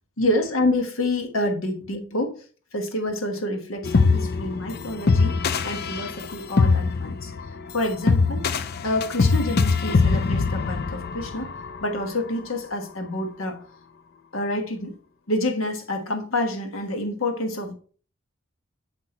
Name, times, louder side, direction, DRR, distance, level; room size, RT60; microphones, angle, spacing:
voice 1, 0.2-2.4 2.7-5.4 5.6-7.3 7.7-8.6 8.8-11.5 11.8-13.6 14.3-14.9 15.3-17.7, left 1 dB, 85° left, 1.3 m, -27 dB
sound 1, 3.8-12.0, left 4 dB, 50° left, 0.5 m, -23 dB
7.3 x 5.9 x 4.2 m
head